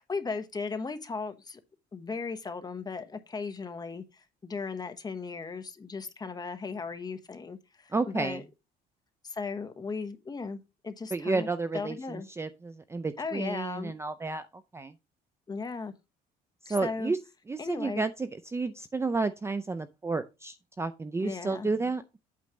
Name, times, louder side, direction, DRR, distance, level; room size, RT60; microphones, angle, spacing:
voice 1, 0.0-1.6 1.9-8.4 9.2-11.5 11.7-12.3 13.2-14.0 15.5-15.9 16.8-17.1 17.6-18.0 21.2-21.7, left 4 dB, 25° left, 1.0 m, -36 dB
voice 2, 7.9-8.4 11.1-14.5 14.7-14.9 16.7-17.2 17.5-22.0, right 3 dB, 15° right, 0.4 m, -31 dB
8.5 x 3.2 x 6.1 m
cardioid pair, 110°, 17 cm